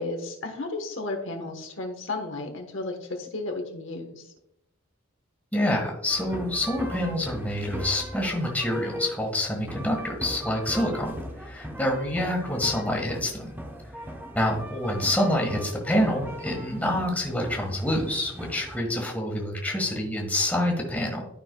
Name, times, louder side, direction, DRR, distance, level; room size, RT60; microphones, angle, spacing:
voice 1, 0.0-4.2 11.8-11.9, left 2 dB, 65° left, 3 dB, 1.1 m, -33 dB
voice 2, 5.5-13.5 14.3-21.2, left 1 dB, 10° left, 0 dB, 1.4 m, -27 dB
sound 1, 6.1-18.8, equal, 10° right, 0.8 m, -38 dB
12.0 x 5.4 x 2.2 m, 0.81 s
head